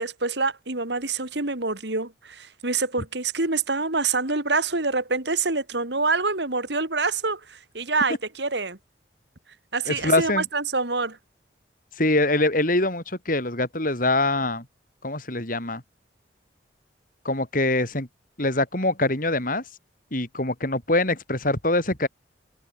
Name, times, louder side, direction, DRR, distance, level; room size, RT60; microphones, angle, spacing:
voice 1, 0.0-8.8 9.7-11.2, right 3 dB, 65° right, 3.1 m, -26 dB
voice 2, 9.9-10.4 12.0-14.6 15.0-15.8 17.2-18.1 18.4-19.6 20.1-22.1, left 2 dB, 45° left, 5.0 m, -24 dB
head